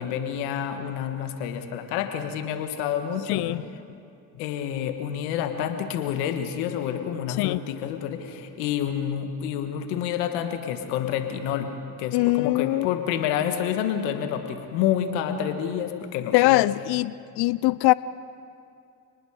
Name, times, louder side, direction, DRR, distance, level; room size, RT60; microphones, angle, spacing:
voice 1, 0.0-3.5 4.4-11.7 12.0-16.6, left 9 dB, 85° left, 7 dB, 1.6 m, -28 dB
voice 2, 3.3-3.6 7.4-7.6 12.1-12.9 16.3-17.9, left 20 dB, 70° left, 19 dB, 0.6 m, -22 dB
29.5 x 19.5 x 4.9 m, 2.5 s
hypercardioid pair, 55°, 40 cm